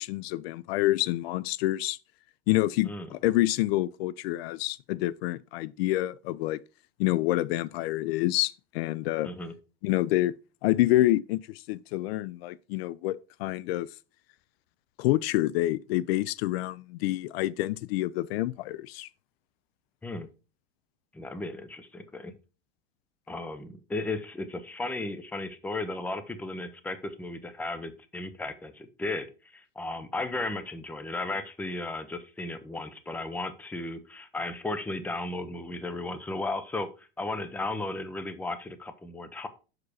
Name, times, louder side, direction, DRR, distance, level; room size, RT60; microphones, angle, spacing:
voice 1, 0.0-2.0 2.5-6.6 7.0-9.3 9.8-10.3 10.6-13.9 15.0-19.1, left 16 dB, 75° left, 0.4 m, -27 dB
voice 2, 9.2-9.5 20.0-20.3 21.1-22.3 23.3-39.5, left 2 dB, 5° left, 0.6 m, -35 dB
6.1 x 4.8 x 4.8 m
supercardioid pair, 125°, 31 cm